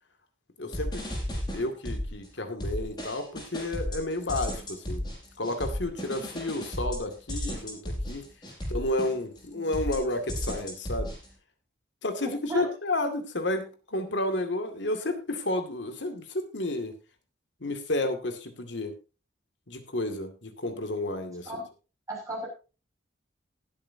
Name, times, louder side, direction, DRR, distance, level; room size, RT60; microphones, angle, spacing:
voice 1, 0.6-1.0 1.5-5.0 5.4-8.2 8.7-11.1 12.0-17.0 17.6-18.9 19.7-21.5, left 2 dB, 80° left, 7 dB, 2.3 m, -31 dB
sound 1, 0.7-2.3 2.6-9.4 9.7-11.3, equal, 25° left, 5.5 m, -34 dB
voice 2, 22.1-22.5, right 1 dB, 20° right, -3 dB, 6.5 m, -35 dB
19.5 x 8.6 x 2.8 m, 0.32 s
head